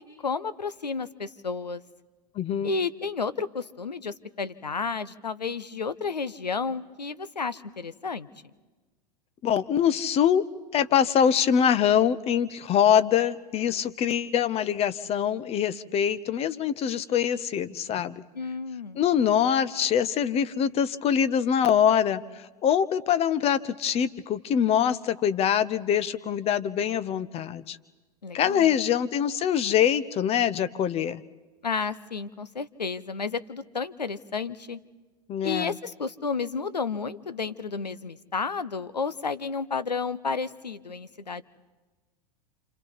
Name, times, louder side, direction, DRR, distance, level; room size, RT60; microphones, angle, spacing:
voice 1, 0.0-1.8 2.6-8.3 18.3-19.0 28.2-28.8 31.6-34.8 35.4-41.4, left 5 dB, 85° left, 16 dB, 0.8 m, -32 dB
voice 2, 2.4-2.7 9.4-10.4 10.7-18.2 19.0-27.8 28.3-31.2 35.3-35.8, left 9 dB, 30° left, 16 dB, 0.8 m, -24 dB
29.0 x 27.0 x 4.1 m, 1.2 s
figure-of-eight pair, 90°, 21 cm